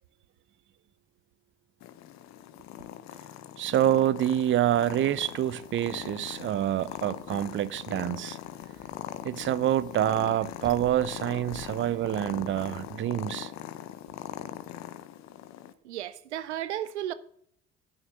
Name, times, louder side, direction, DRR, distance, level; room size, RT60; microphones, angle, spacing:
Purr, 1.8-15.7, left 11 dB, 55° left, 0.9 m, -41 dB
voice 1, 3.6-8.4 9.2-13.5, right 12 dB, 35° right, 0.5 m, -27 dB
sound 1, 4.6-12.9, right 2 dB, 10° right, 1.2 m, -54 dB
voice 2, 15.8-17.1, right 12 dB, 85° right, 0.5 m, -34 dB
9.5 x 6.3 x 6.4 m
hypercardioid pair, 55°, 34 cm